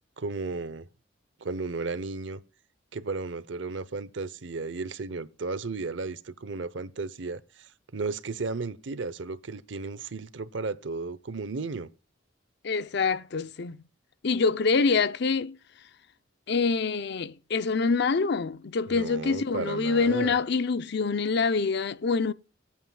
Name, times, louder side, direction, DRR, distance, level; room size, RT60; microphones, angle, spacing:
voice 1, 0.2-0.9 1.4-2.4 2.9-11.9 18.9-20.4, right 3 dB, 70° right, 0.8 m, -34 dB
voice 2, 12.6-13.8 14.2-15.6 16.5-22.3, left 4 dB, 60° left, 0.6 m, -26 dB
24.0 x 8.7 x 2.3 m
head